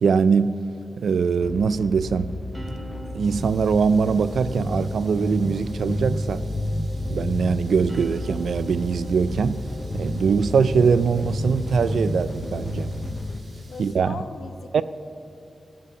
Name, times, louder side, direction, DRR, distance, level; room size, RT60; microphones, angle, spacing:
voice 1, 0.0-0.6 1.0-2.3 3.1-6.5 7.1-9.6 9.9-12.9 13.8-14.2 14.7-14.8, right 5 dB, 80° right, 0.4 m, -22 dB
sound 1, 1.4-13.4, left 3 dB, 35° left, 0.5 m, -36 dB
sound 2, 2.5-13.2, equal, 15° right, 1.2 m, -31 dB
sound 3, 3.2-13.9, right 2 dB, 50° right, 2.5 m, -53 dB
voice 2, 13.7-14.8, left 4 dB, 75° left, 0.8 m, -39 dB
16.5 x 5.6 x 7.1 m
wide cardioid pair, 145°, 0 cm